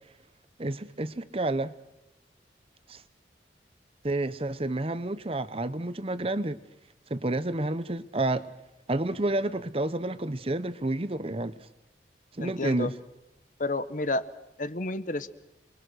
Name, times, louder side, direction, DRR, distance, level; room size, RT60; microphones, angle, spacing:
voice 1, 0.6-1.7 2.9-3.0 4.0-6.6 7.1-8.5 8.9-11.5 12.4-12.9, right 2 dB, 30° right, 14 dB, 0.8 m, -29 dB
voice 2, 12.4-12.9 13.6-14.2 14.6-15.3, left 2 dB, 45° left, 13 dB, 1.0 m, -30 dB
28.5 x 22.5 x 6.3 m, 0.92 s
head